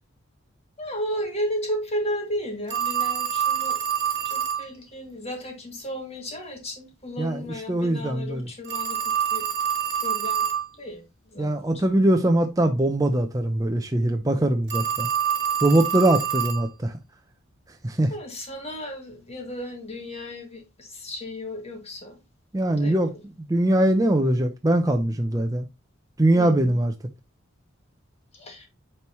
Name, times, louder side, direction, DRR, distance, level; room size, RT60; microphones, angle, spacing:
voice 1, 0.8-3.8 4.2-9.5 10.0-10.5 10.8-11.0 11.3-11.9 18.1-22.2 22.6-23.0 26.3-26.8 28.3-28.7, equal, 30° left, 2.2 m, -34 dB
Telephone, 2.7-4.7 8.6-10.7 14.7-16.7, right 8 dB, 60° right, 1.6 m, -26 dB
voice 2, 7.2-8.5 11.4-15.1 15.6-16.9 17.8-18.1 22.5-23.1 23.5-25.7 26.2-26.9, right 1 dB, 15° right, 0.6 m, -22 dB
8.8 x 4.6 x 3.0 m
head